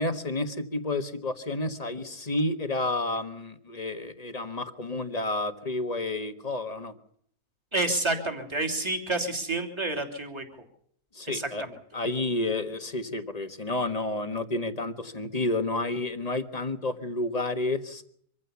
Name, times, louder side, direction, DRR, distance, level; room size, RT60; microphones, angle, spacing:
voice 1, 0.0-6.9 11.1-11.6 11.9-18.2, left 2 dB, 25° left, 9 dB, 1.5 m, -30 dB
voice 2, 7.7-10.4 11.3-11.8, right 2 dB, 15° right, 4 dB, 3.1 m, -29 dB
25.0 x 15.5 x 7.0 m, 0.66 s
omnidirectional pair, 1.8 m